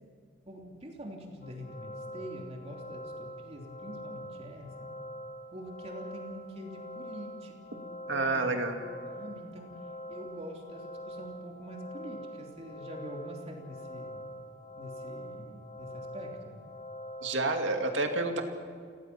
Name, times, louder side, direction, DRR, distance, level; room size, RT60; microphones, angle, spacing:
voice 1, 0.5-4.9 5.5-7.8 8.1-8.6 9.1-9.7 10.1-14.2 14.8-16.6, equal, 35° right, 0 dB, 2.9 m, -45 dB
sound 1, 1.4-17.5, equal, 45° left, 1.7 m, -44 dB
voice 2, 8.1-8.8 17.2-18.4, right 2 dB, 85° right, 4 dB, 2.3 m, -29 dB
28.5 x 18.0 x 6.0 m, 2.1 s
head